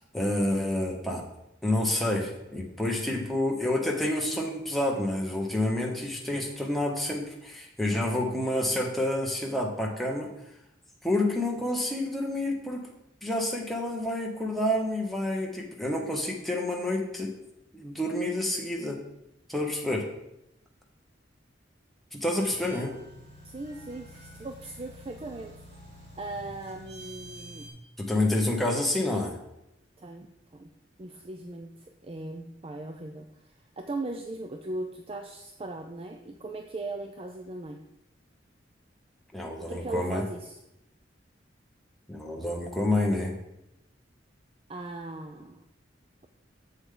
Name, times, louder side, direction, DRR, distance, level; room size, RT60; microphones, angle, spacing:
voice 1, 0.1-1.2 1.6-10.3 11.0-12.8 13.2-17.3 17.7-19.0 19.5-20.0 22.1-22.9 28.0-29.4 39.3-40.2 42.1-43.3, left 1 dB, ahead, -1 dB, 1.1 m, -28 dB
sound 1, 22.4-27.7, equal, 60° right, 2.3 m, -48 dB
voice 2, 23.4-25.5 26.1-27.7 30.0-30.7 31.0-37.8 39.6-40.6 44.7-45.6, right 2 dB, 30° right, 5 dB, 0.4 m, -38 dB
7.3 x 6.9 x 3.8 m, 0.85 s
head